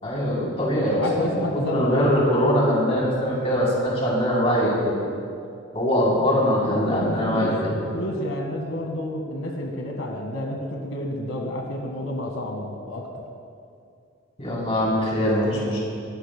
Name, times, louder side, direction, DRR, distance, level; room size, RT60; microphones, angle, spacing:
voice 1, 0.0-5.0 5.7-7.7 14.4-15.8, equal, 30° left, -5 dB, 3.5 m, -22 dB
voice 2, 1.0-2.2 6.6-13.1 15.3-15.6, left 1 dB, 85° left, 0 dB, 1.6 m, -30 dB
23.5 x 14.0 x 2.2 m, 2.5 s
head